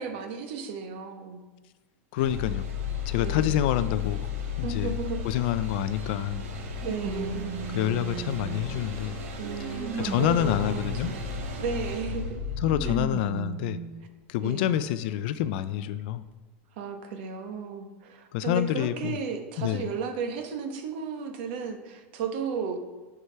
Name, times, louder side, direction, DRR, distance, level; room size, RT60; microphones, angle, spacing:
voice 1, 0.0-1.4 3.2-3.6 4.6-5.2 6.8-7.6 9.4-11.2 11.6-12.4 12.8-12.9 14.4-14.7 16.8-22.8, right 5 dB, 50° right, 6 dB, 1.2 m, -34 dB
voice 2, 2.1-2.7 3.1-4.3 4.6-5.0 5.2-6.4 7.7-9.2 9.6-9.7 10.0-11.1 12.6-13.8 14.3-16.2 18.3-19.2 19.6-19.9, left 11 dB, 45° left, 13 dB, 0.4 m, -27 dB
sound 1, 2.2-13.0, left 5 dB, 75° right, 1.7 m, -34 dB
sound 2, 5.6-5.7 6.8-8.9 9.4-11.5 12.6-14.1 14.8-14.9 16.0-16.1, right 4 dB, 20° right, 0.7 m, -37 dB
9.6 x 4.8 x 5.5 m, 1.3 s
supercardioid pair, 170°, 7 cm